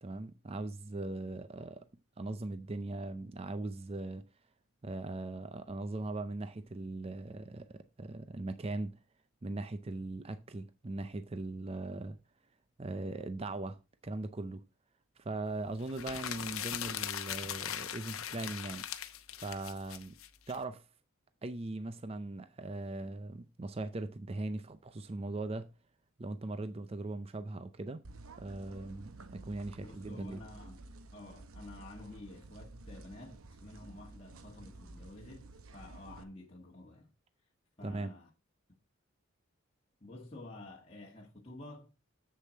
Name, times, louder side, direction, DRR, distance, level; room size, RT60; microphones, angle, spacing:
voice 1, 0.0-1.9 2.2-4.2 4.8-9.0 9.4-12.2 12.8-14.6 15.2-18.8 19.4-20.1 20.5-20.8 21.4-25.7 26.2-28.0 28.4-30.4 37.8-38.1, right 2 dB, 25° right, 0.4 m, -40 dB
sound 1, 15.9-20.6, left 10 dB, 75° left, 0.8 m, -40 dB
sound 2, 28.0-36.2, right 2 dB, 75° right, 0.8 m, -52 dB
voice 2, 29.8-30.8 31.1-37.1 37.8-38.3 40.0-42.0, left 2 dB, 30° left, 1.4 m, -50 dB
7.6 x 6.8 x 4.2 m
head